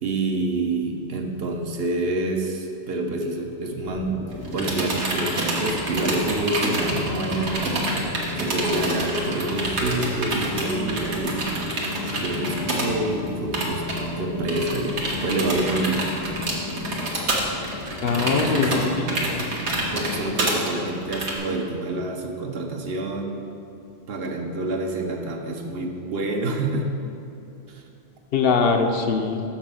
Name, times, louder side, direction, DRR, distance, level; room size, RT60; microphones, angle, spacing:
voice 1, 0.0-11.5 12.1-13.9 14.2-16.1 18.0-19.4 19.9-23.3 24.1-26.9 27.7-27.8, right 2 dB, 65° right, 3 dB, 1.0 m, -27 dB
sound 1, 3.8-20.2, left 2 dB, 25° left, 0.6 m, -34 dB
sound 2, 4.3-12.9 13.2-13.3 13.5-14.0 14.5-21.3, right 2 dB, 90° right, 1.5 m, -28 dB
voice 2, 18.0-19.1 19.3-19.4 28.3-29.4, left 4 dB, 65° left, 4 dB, 0.8 m, -22 dB
6.2 x 5.8 x 6.9 m, 2.7 s
omnidirectional pair, 1.1 m